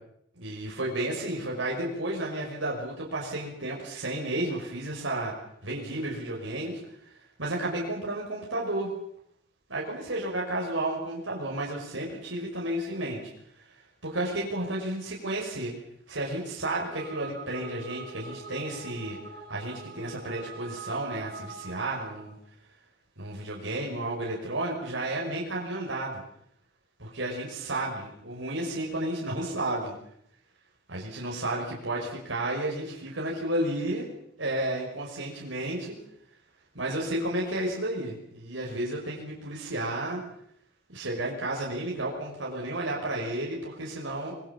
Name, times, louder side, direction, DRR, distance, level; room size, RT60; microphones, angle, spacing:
voice 1, 0.3-5.3 5.6-8.9 9.7-13.3 13.7-13.8 14.0-15.7 16.1-19.2 19.5-22.4 23.2-26.2 27.0-30.0 30.9-34.1 34.4-36.0 36.7-40.2 40.9-44.3, right 1 dB, 85° right, -2 dB, 5.8 m, -32 dB
sound 1, 16.5-22.3, right 3 dB, 55° right, 7.0 m, -44 dB
26.0 x 21.5 x 7.3 m, 0.72 s
head